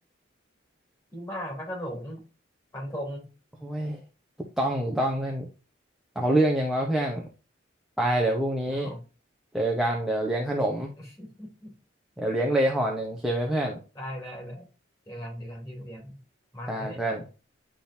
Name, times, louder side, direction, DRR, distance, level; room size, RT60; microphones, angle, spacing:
voice 1, 1.1-2.2 2.7-3.3 8.7-9.0 11.0-11.7 13.9-14.7 15.1-16.2 16.5-17.0, equal, 15° left, -1 dB, 3.2 m, -37 dB
voice 2, 3.6-4.0 4.6-5.5 6.1-7.3 8.0-8.9 9.5-10.9 12.2-13.8 16.7-17.2, right 1 dB, ahead, -2 dB, 1.0 m, -26 dB
10.5 x 3.8 x 2.7 m, 0.33 s
head